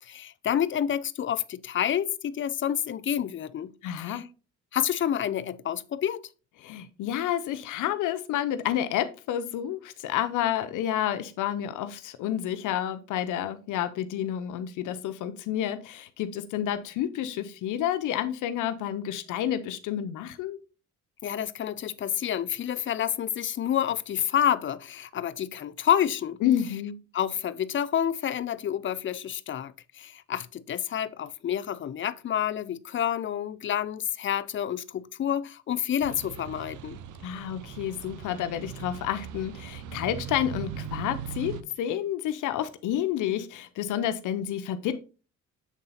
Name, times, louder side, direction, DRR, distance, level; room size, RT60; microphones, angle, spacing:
voice 1, 0.0-3.7 4.0-4.2 4.7-6.2 21.2-26.4 27.1-37.0, left 9 dB, 40° left, 0.4 m, -29 dB
voice 2, 3.8-4.2 6.6-20.6 26.4-27.0 37.2-45.0, left 11 dB, 85° left, 0.6 m, -30 dB
sound 1, 36.0-41.6, right 8 dB, 75° right, 0.7 m, -39 dB
7.2 x 3.8 x 4.0 m
cardioid pair, 90°, 30 cm